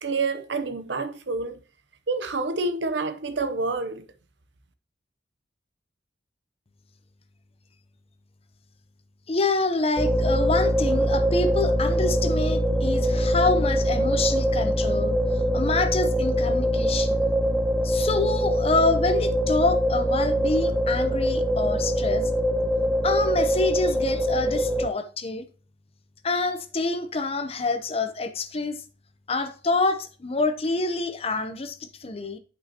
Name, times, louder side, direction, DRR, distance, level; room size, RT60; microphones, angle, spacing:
voice 1, 0.0-1.6 2.1-4.0, right 3 dB, 70° right, 0.8 m, -28 dB
voice 2, 9.3-15.2 15.5-17.3 17.8-22.3 23.0-25.5 26.2-28.8 29.3-32.4, left 3 dB, 35° left, 0.7 m, -27 dB
sound 1, 10.0-24.9, equal, 5° right, 0.4 m, -23 dB
11.0 x 5.5 x 2.9 m
head